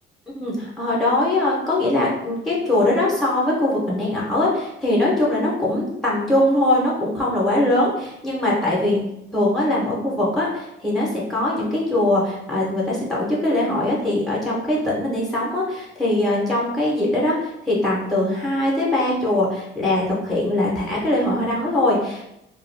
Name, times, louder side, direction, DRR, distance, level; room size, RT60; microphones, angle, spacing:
voice 1, 0.3-9.0 9.3-22.3, left 1 dB, ahead, -5 dB, 0.7 m, -21 dB
2.3 x 2.3 x 3.2 m, 0.83 s
cardioid pair, 105°, 21 cm